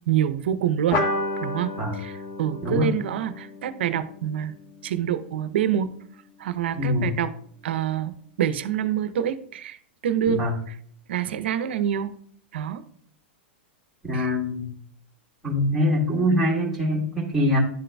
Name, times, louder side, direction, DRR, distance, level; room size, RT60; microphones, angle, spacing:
voice 1, 0.1-1.0 1.4-4.5 4.8-5.9 6.4-7.3 7.6-9.8 10.0-10.5 11.1-12.1 12.5-12.8 14.1-14.3, right 10 dB, 75° right, 12 dB, 0.6 m, -26 dB
sound 1, 0.9-5.8, left 2 dB, 50° left, 1.2 m, -32 dB
voice 2, 6.7-7.1 10.3-10.5 14.0-14.7 15.4-17.6, left 1 dB, ahead, -6 dB, 2.0 m, -23 dB
11.0 x 3.9 x 2.2 m, 0.62 s
hypercardioid pair, 140°, 6 cm